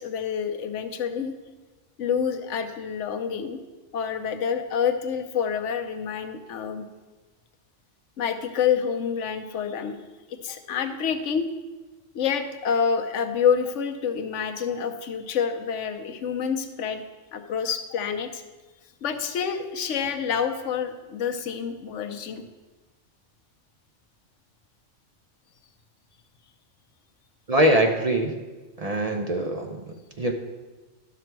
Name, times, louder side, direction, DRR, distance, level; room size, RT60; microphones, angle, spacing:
voice 1, 0.0-1.3 2.0-3.6 3.9-6.8 8.2-10.0 10.3-11.5 12.1-17.0 17.3-18.4 19.0-22.4, left 7 dB, 70° left, 6 dB, 1.1 m, -27 dB
voice 2, 27.5-28.3 28.8-29.8 30.2-30.3, right 1 dB, 40° right, 3 dB, 0.6 m, -22 dB
12.5 x 6.0 x 4.6 m, 1.2 s
omnidirectional pair, 1.3 m